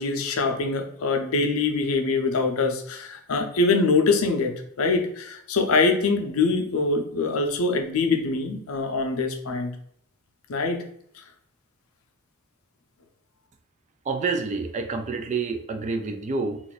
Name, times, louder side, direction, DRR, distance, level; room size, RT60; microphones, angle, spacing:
voice 1, 0.0-9.7 10.5-10.8, left 3 dB, 70° left, 4 dB, 0.5 m, -24 dB
voice 2, 14.1-16.6, right 4 dB, 35° right, 7 dB, 0.3 m, -28 dB
2.5 x 2.3 x 3.9 m, 0.68 s
head